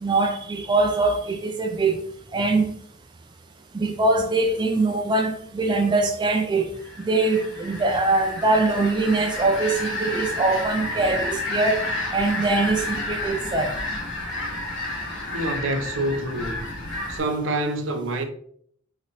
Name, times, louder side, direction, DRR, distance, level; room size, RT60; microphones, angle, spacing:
voice 1, 0.0-2.0 2.3-2.7 3.7-6.7 7.0-11.9 12.1-13.7, right 3 dB, 20° right, 0.3 m, -22 dB
sound 1, 6.8-17.2, left 2 dB, 65° left, 1.7 m, -31 dB
voice 2, 15.3-16.6 17.1-18.2, right 1 dB, 65° right, 0.7 m, -26 dB
5.6 x 2.9 x 3.1 m
head